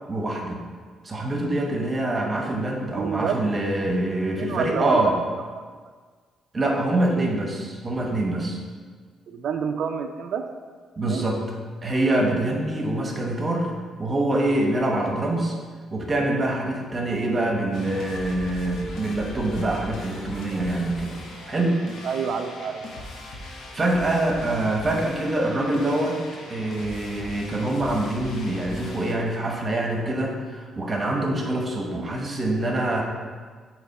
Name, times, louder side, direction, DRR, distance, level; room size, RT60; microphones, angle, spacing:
voice 1, 0.1-0.6 1.0-5.1 6.5-8.6 11.0-11.4 11.8-13.7 14.0-15.6 15.9-21.1 21.5-21.8 23.7-26.2 26.5-33.0, right 1 dB, 30° right, 1 dB, 1.1 m, -25 dB
voice 2, 2.9-3.4 4.3-5.0 5.3-5.6 9.3-10.4 11.0-11.2 22.0-23.1 31.7-32.1, right 7 dB, 70° right, 6 dB, 0.4 m, -29 dB
sound 1, 17.7-29.1, left 2 dB, 70° left, 0.9 m, -39 dB
8.1 x 3.1 x 4.1 m, 1.5 s
cardioid pair, 90°, 0 cm